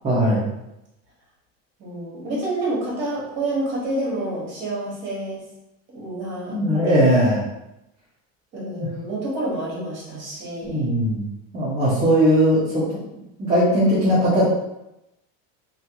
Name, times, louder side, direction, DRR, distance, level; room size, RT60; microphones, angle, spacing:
voice 1, 0.0-0.5 6.5-7.4 8.8-8.9 10.6-11.3 11.5-12.8 13.4-14.5, equal, 15° right, -10 dB, 0.5 m, -19 dB
voice 2, 1.8-5.4 5.9-6.6 8.5-10.9, right 1 dB, 35° right, -5 dB, 1.1 m, -28 dB
2.4 x 2.2 x 2.8 m, 0.89 s
cardioid pair, 170°, 31 cm